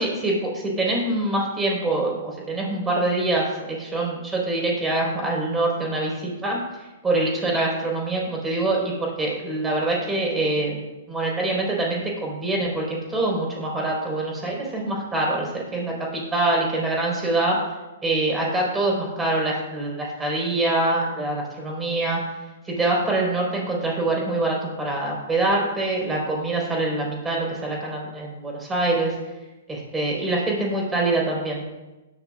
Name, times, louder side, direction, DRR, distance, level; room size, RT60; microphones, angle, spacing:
voice 1, 0.0-6.6 7.0-17.6 18.0-22.2 22.7-29.2 29.7-31.6, right 2 dB, 10° right, -2 dB, 4.8 m, -25 dB
17.0 x 12.0 x 2.6 m, 1.1 s
figure-of-eight pair, 115°, 0 cm